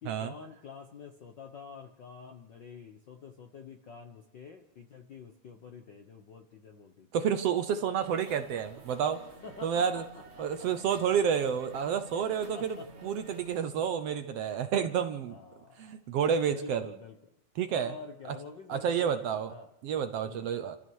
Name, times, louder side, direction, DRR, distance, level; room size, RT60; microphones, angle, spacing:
voice 1, 0.0-7.1 9.4-10.0 10.4-10.9 12.5-12.9 15.3-15.9 16.5-17.2 17.7-19.7 20.2-20.5, left 5 dB, 60° left, 5 dB, 1.2 m, -48 dB
voice 2, 7.1-9.3 9.6-10.0 10.4-15.4 15.8-16.9 17.6-17.9 18.3-18.4 18.7-19.5 19.8-20.8, right 7 dB, 65° right, 9 dB, 1.7 m, -30 dB
sound 1, 8.0-13.6, right 2 dB, 30° right, 1.4 m, -50 dB
29.0 x 14.0 x 6.3 m, 0.83 s
omnidirectional pair, 3.5 m